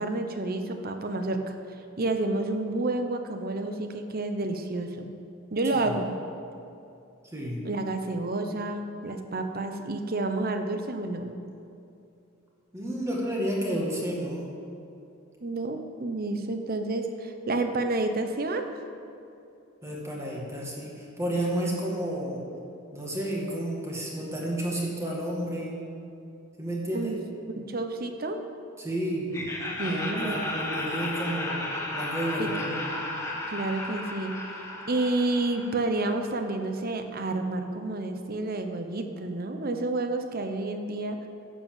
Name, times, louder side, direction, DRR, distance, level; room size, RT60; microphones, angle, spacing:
voice 1, 0.0-1.5 2.0-5.1 5.5-6.2 7.6-11.3 15.4-18.7 26.9-27.2 27.6-28.4 29.8-30.4 32.4-32.5 33.5-34.3 34.9-41.2, right 2 dB, 45° right, 6 dB, 0.9 m, -30 dB
voice 2, 12.7-14.5 19.8-22.4 22.9-25.8 26.6-27.1 28.8-29.4 29.9-32.9, right 1 dB, 15° right, -3 dB, 2.1 m, -31 dB
Laughter, 29.3-36.3, left 2 dB, 15° left, 1.4 m, -34 dB
11.0 x 7.3 x 7.7 m, 2.7 s
head